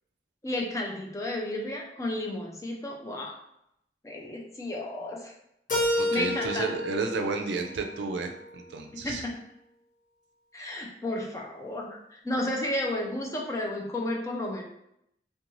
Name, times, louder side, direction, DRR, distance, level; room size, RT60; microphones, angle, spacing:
voice 1, 0.4-3.4 4.0-5.3 5.9-6.7 8.9-9.4 10.5-14.7, left 1 dB, 20° left, 0 dB, 0.4 m, -32 dB
Keyboard (musical), 5.7-8.6, left 1 dB, 45° left, 0.8 m, -31 dB
voice 2, 5.9-9.2, right 4 dB, 90° right, 5 dB, 0.4 m, -32 dB
2.5 x 2.3 x 2.9 m, 0.78 s
head